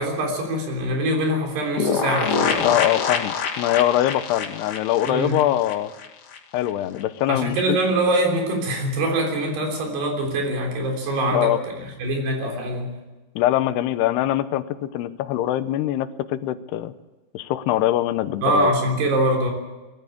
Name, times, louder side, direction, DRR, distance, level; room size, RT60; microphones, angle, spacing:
voice 1, 0.0-2.7 5.1-5.4 7.3-13.0 18.4-19.5, right 1 dB, 80° right, 2 dB, 5.7 m, -23 dB
sound 1, 1.8-6.4 6.7-6.8 7.0-7.1, left 6 dB, 55° left, 1.7 m, -26 dB
voice 2, 2.6-5.9 6.5-7.8 11.3-11.6 13.4-16.9 17.3-18.7, left 13 dB, 80° left, 13 dB, 2.9 m, -23 dB
21.5 x 14.5 x 8.5 m, 1.1 s
omnidirectional pair, 4.7 m